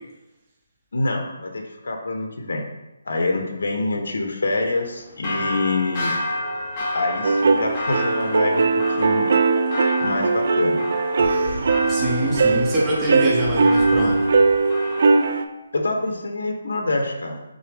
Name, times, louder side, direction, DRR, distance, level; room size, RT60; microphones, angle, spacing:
voice 1, 0.9-2.7 3.1-6.1 6.9-8.7 9.0-9.3 10.0-10.9 15.7-17.4, left 2 dB, 75° left, 3 dB, 0.7 m, -25 dB
sound 1, 4.5-15.2, left 2 dB, 20° left, 0.9 m, -31 dB
sound 2, 7.2-15.4, right 4 dB, 50° right, 0.3 m, -20 dB
sound 3, 11.2-14.6, right 1 dB, 80° right, 0.9 m, -36 dB
voice 2, 11.9-14.3, right 1 dB, 10° right, -6 dB, 0.7 m, -24 dB
6.1 x 2.1 x 3.4 m, 0.98 s
hypercardioid pair, 170°, 0 cm